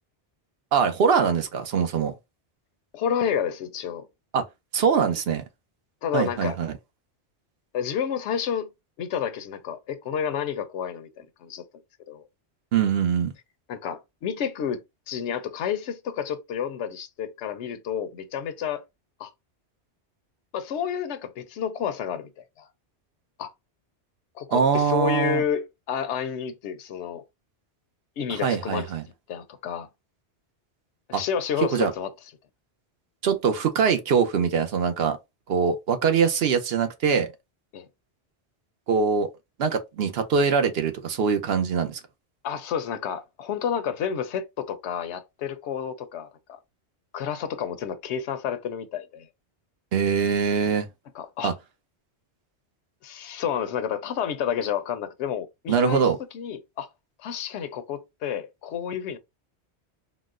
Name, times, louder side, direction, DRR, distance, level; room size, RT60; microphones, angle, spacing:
voice 1, 0.7-2.1 4.3-4.4 4.7-5.4 6.1-6.7 12.7-13.3 24.5-25.4 28.3-29.0 31.1-31.2 31.7-31.9 33.2-35.2 35.5-37.3 38.9-39.3 39.6-42.0 49.9-50.9 51.4-51.5 55.7-56.2, right 6 dB, 65° right, 0.8 m, -23 dB
voice 2, 2.9-4.1 6.0-6.6 7.7-8.7 9.0-11.6 12.1-12.2 13.7-14.8 15.1-18.8 19.2-19.3 20.5-22.3 22.6-22.7 23.4-23.5 24.4-27.2 28.2-28.9 29.3-29.9 31.1-32.1 37.7-37.9 42.4-46.6 47.1-49.3 51.1-51.5 53.0-56.1 56.3-56.9 57.2-59.2, left 8 dB, 85° left, 0.9 m, -30 dB
3.9 x 2.0 x 2.4 m
omnidirectional pair, 1.1 m